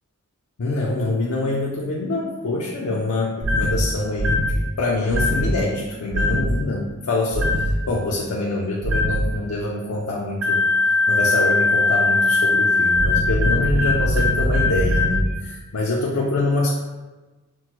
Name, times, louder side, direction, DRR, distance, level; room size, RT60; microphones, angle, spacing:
voice 1, 0.6-10.6 11.1-16.8, left 2 dB, 75° left, -4 dB, 0.5 m, -25 dB
sound 1, 3.4-3.8 4.2-4.5 5.1-5.5 6.1-6.5 7.3-7.7 8.8-9.2 10.4-15.2, left 2 dB, 55° right, 0.6 m, -20 dB
5.9 x 2.1 x 2.9 m, 1.2 s
head